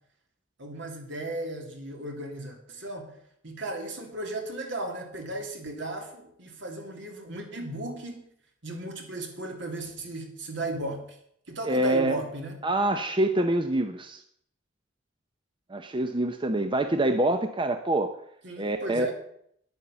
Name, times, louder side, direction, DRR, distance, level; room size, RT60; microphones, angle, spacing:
voice 1, 0.6-3.1 3.4-8.3 8.6-11.2 11.5-12.6 18.4-19.1, right 1 dB, 65° right, 2 dB, 2.9 m, -35 dB
voice 2, 11.6-12.2 12.6-14.2 15.7-18.1 18.6-19.1, right 1 dB, 25° right, 7 dB, 0.7 m, -25 dB
10.5 x 9.1 x 7.0 m, 0.69 s
head